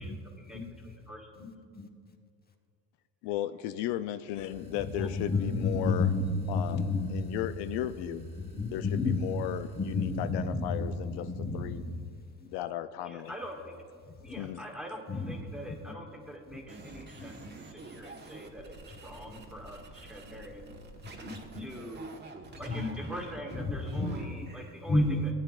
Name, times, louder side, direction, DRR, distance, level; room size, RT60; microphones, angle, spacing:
voice 1, 0.0-1.3 4.8-5.1 13.0-13.7 14.2-20.7 21.6-22.2 22.6-25.3, equal, ahead, -1 dB, 1.7 m, -44 dB
voice 2, 1.4-1.9 4.6-7.5 8.0-9.4 9.7-12.1 12.4-12.5 14.2-14.4 15.1-15.4 15.6-15.8 16.5-16.6 17.1-17.5 17.8-17.9 19.2-19.5 21.0-21.7 22.7-22.9 23.5-24.2 24.9-25.2, left 3 dB, 20° left, 3 dB, 1.2 m, -32 dB
voice 3, 3.2-6.1 6.5-8.2 8.7-11.3 11.5-11.8 12.5-13.3 14.4-14.6, left 13 dB, 75° left, 10 dB, 0.5 m, -35 dB
sound 1, 4.3-10.4, right 1 dB, 75° right, 2.2 m, -52 dB
sound 2, 16.7-24.7, right 3 dB, 25° right, 1.2 m, -48 dB
17.0 x 9.1 x 2.4 m, 2.2 s
cardioid pair, 105°, 41 cm